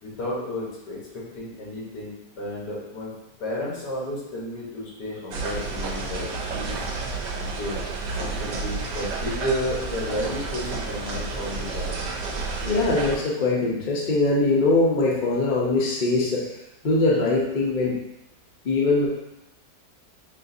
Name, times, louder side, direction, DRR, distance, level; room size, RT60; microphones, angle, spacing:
voice 1, 0.0-3.1 3.4-6.7 7.4-7.8 8.2-12.0, left 1 dB, 75° left, -5 dB, 1.8 m, -32 dB
sound 1, 5.3-13.2, right 4 dB, 85° right, 1.4 m, -30 dB
voice 2, 12.6-16.4 16.8-17.9 18.6-19.1, left 2 dB, 45° left, -3 dB, 0.6 m, -22 dB
6.3 x 2.5 x 2.6 m, 0.90 s
omnidirectional pair, 1.8 m